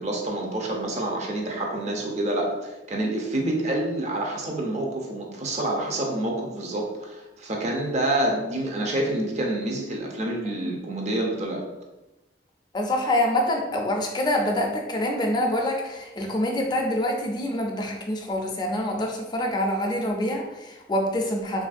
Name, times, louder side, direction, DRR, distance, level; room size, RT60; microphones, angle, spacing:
voice 1, 0.0-11.6, right 1 dB, 40° right, 0 dB, 0.5 m, -27 dB
voice 2, 12.7-21.7, left 1 dB, 25° left, 2 dB, 0.4 m, -26 dB
3.1 x 2.5 x 2.4 m, 1.0 s
head